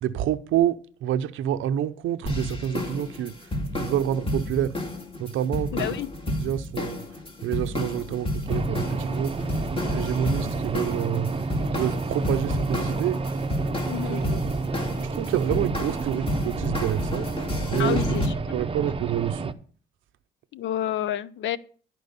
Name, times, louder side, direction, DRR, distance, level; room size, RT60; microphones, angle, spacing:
voice 1, 0.0-4.8 5.2-5.9 6.4-7.0 7.4-9.4 9.9-11.4 11.7-13.4 13.8-14.4 15.0-17.3 17.7-18.2 18.5-19.5, right 10 dB, 80° right, 0.6 m, -28 dB
sound 1, 2.3-18.3, left 1 dB, 25° left, 2.3 m, -31 dB
voice 2, 5.7-6.1 13.9-14.2 17.8-18.3 20.5-21.6, left 11 dB, 70° left, 0.6 m, -29 dB
sound 2, 8.5-19.5, right 3 dB, 25° right, 0.7 m, -30 dB
11.5 x 4.6 x 6.7 m
cardioid pair, 90°, 20 cm